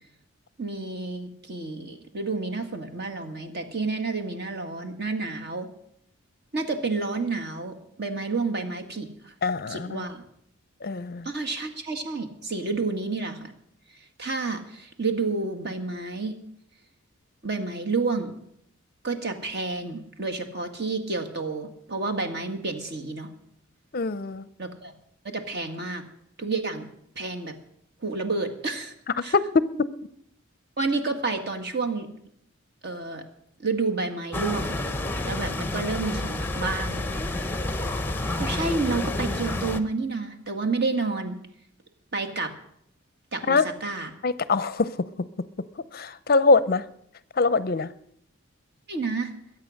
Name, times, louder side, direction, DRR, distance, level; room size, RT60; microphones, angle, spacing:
voice 1, 0.6-5.7 6.5-9.3 9.7-10.2 11.2-13.5 13.9-16.3 17.4-18.3 19.0-23.3 24.6-24.9 25.2-26.0 26.4-26.9 27.1-27.5 28.0-28.9 29.2-29.3 30.8-32.1 32.8-33.2 33.6-34.8 35.2-37.0 38.4-41.4 42.1-42.5 43.3-44.1 48.9-49.3, right 3 dB, 50° right, 4 dB, 1.8 m, -30 dB
voice 2, 9.4-10.0 10.8-11.3 23.9-24.4 29.3-29.4 29.8-29.9 43.5-43.7 44.2-44.9 45.9-46.8 47.4-47.9, left 3 dB, 45° left, 16 dB, 0.5 m, -23 dB
sound 1, 34.3-39.8, left 2 dB, 10° left, 0.7 m, -29 dB
22.0 x 8.6 x 6.4 m, 0.71 s
head